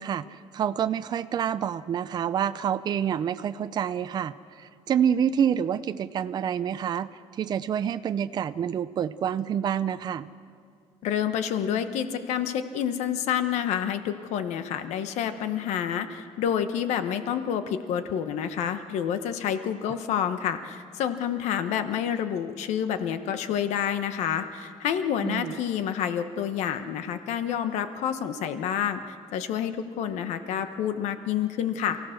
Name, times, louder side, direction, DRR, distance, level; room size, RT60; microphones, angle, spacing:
voice 1, 0.0-10.3 19.9-20.0 25.2-25.6, right 8 dB, 40° right, 11 dB, 0.5 m, -28 dB
voice 2, 11.0-32.0, left 9 dB, 85° left, 9 dB, 1.1 m, -28 dB
28.5 x 16.0 x 6.5 m, 2.3 s
cardioid pair, 155°, 11 cm